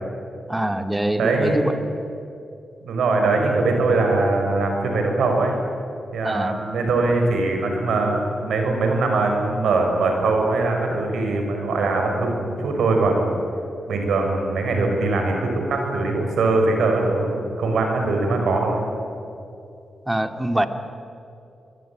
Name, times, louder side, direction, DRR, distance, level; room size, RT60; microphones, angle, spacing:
voice 1, 0.5-1.7 6.2-6.6 20.1-20.7, right 1 dB, 10° right, 8 dB, 2.0 m, -23 dB
voice 2, 1.2-1.5 2.8-5.5 6.1-13.3 13.9-18.8, right 3 dB, 85° right, 2 dB, 5.7 m, -21 dB
24.5 x 22.0 x 8.8 m, 2.7 s
cardioid pair, 65°, 0 cm